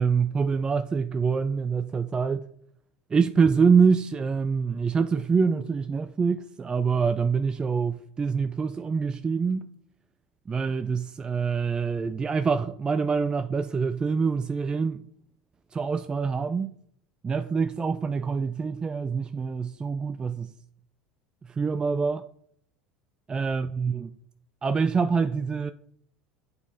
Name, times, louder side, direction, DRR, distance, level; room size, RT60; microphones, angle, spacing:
voice 1, 0.0-2.5 3.1-9.7 10.5-15.0 15.7-16.7 17.2-20.5 21.5-22.2 23.3-24.1 24.6-25.7, right 5 dB, 20° right, 0.3 m, -25 dB
8.6 x 4.0 x 3.9 m
figure-of-eight pair, 75°, 4 cm